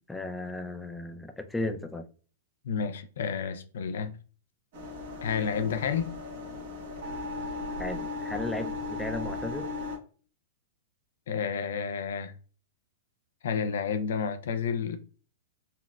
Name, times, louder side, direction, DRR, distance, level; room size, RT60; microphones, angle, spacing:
voice 1, 0.1-2.0 7.8-9.7, left 2 dB, 5° left, 0.4 m, -35 dB
voice 2, 2.6-4.1 5.2-6.1 11.3-12.3 13.4-15.0, left 6 dB, 75° left, 0.4 m, -30 dB
sound 1, 4.7-10.0, left 3 dB, 60° right, 1.3 m, -36 dB
4.1 x 2.1 x 2.3 m
hypercardioid pair, 125°, 0 cm